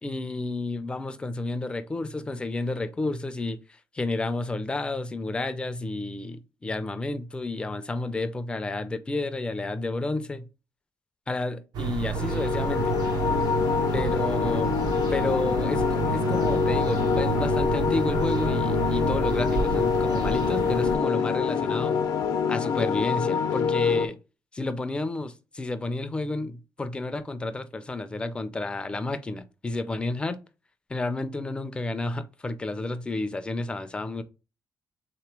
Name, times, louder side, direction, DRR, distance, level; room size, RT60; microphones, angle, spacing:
voice 1, 0.0-3.6 3.9-10.5 11.3-12.9 13.9-14.7 15.1-22.0 22.5-24.2 24.5-30.4 30.9-34.2, left 2 dB, 15° left, 0.4 m, -31 dB
sound 1, 11.7-21.0, right 7 dB, 85° right, 0.7 m, -30 dB
sound 2, 12.1-24.0, left 6 dB, 70° left, 0.6 m, -25 dB
3.6 x 2.9 x 4.6 m
cardioid pair, 170°, 7 cm